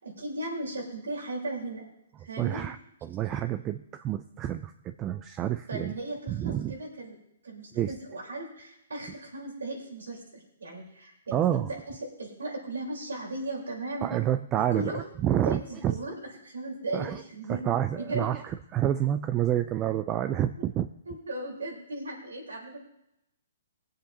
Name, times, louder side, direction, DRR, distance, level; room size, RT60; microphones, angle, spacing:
voice 1, 0.0-1.8 2.2-2.6 5.7-7.2 7.4-11.4 11.7-14.1 14.5-15.0 15.3-17.6 17.9-18.3 21.1-22.8, right 2 dB, 90° right, -2 dB, 4.3 m, -37 dB
voice 2, 2.4-2.8 3.0-5.9 6.3-6.8 7.7-7.9 11.3-11.7 14.0-16.0 16.9-17.2 17.5-20.9, right 11 dB, 25° right, 9 dB, 0.4 m, -28 dB
21.0 x 7.6 x 2.9 m, 0.82 s
hypercardioid pair, 140°, 0 cm